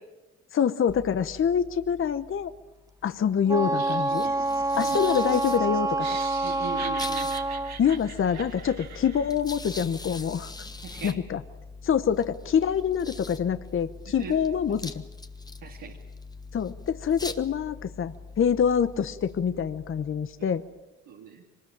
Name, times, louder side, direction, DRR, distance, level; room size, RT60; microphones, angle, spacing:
voice 1, 0.5-2.5 3.0-4.3 4.8-6.1 7.8-10.5 11.0-11.4 11.8-14.9 16.5-20.6, left 7 dB, 45° left, 12 dB, 0.9 m, -26 dB
sound 1, 0.9-20.8, left 3 dB, 15° left, 1.4 m, -43 dB
Wind instrument woodwind instrument, 3.5-7.8, right 2 dB, 10° right, 0.9 m, -27 dB
Laughter, 3.6-9.4, right 7 dB, 65° right, 2.5 m, -42 dB
voice 2, 6.4-7.4 10.8-11.2 14.1-14.4 14.7-14.8 15.6-16.0 20.4-20.5 21.1-21.4, right 6 dB, 85° right, -1 dB, 2.6 m, -40 dB
23.0 x 20.0 x 8.8 m, 1.1 s
cardioid pair, 90°, 30 cm